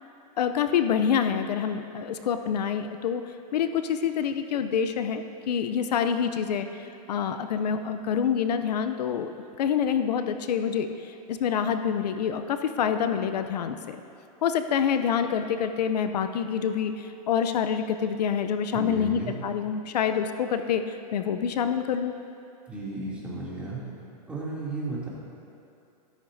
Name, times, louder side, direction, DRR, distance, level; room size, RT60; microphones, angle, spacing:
voice 1, 0.4-9.3 9.6-14.0 14.4-22.1, left 7 dB, 85° left, 9 dB, 0.6 m, -27 dB
voice 2, 18.7-19.3 22.7-23.8 24.3-25.1, right 2 dB, 5° right, -7 dB, 2.7 m, -34 dB
13.5 x 13.0 x 2.7 m, 2.7 s
hypercardioid pair, 135°, 20 cm